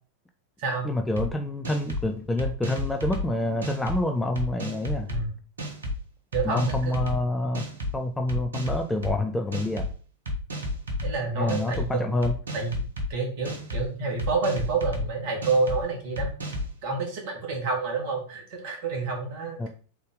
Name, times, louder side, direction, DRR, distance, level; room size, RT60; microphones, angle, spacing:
voice 1, 0.8-5.1 6.4-7.7 7.9-9.8 11.4-12.3 19.6-19.7, left 1 dB, 10° left, 5 dB, 0.5 m, -27 dB
sound 1, 1.2-1.3 1.6-2.0 2.4-3.2 3.6-4.0 4.4-5.2 5.6-5.9 6.3-7.2 7.5-7.9 8.3-9.1 9.5-9.9 10.3-11.1 11.5-11.8 12.2-13.1 13.4-13.8 14.2-15.0 15.4-15.8 16.2-16.7, left 1 dB, 70° right, 1.1 m, -31 dB
voice 2, 6.3-7.1 11.0-12.1 12.5-12.7 13.1-16.3 16.8-19.7, right 4 dB, 50° right, 1 dB, 1.7 m, -28 dB
3.9 x 3.6 x 3.8 m, 0.41 s
figure-of-eight pair, 90°, 0 cm